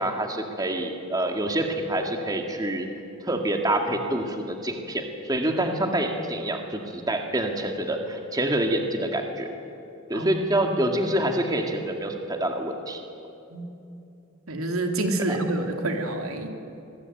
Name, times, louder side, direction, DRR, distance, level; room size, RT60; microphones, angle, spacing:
voice 1, 0.0-2.9 3.2-9.5 10.1-13.0 15.3-15.4, right 1 dB, 20° right, 3 dB, 2.0 m, -26 dB
voice 2, 14.5-16.5, right 2 dB, 85° right, 4 dB, 3.0 m, -27 dB
25.0 x 20.5 x 9.2 m, 2.7 s
head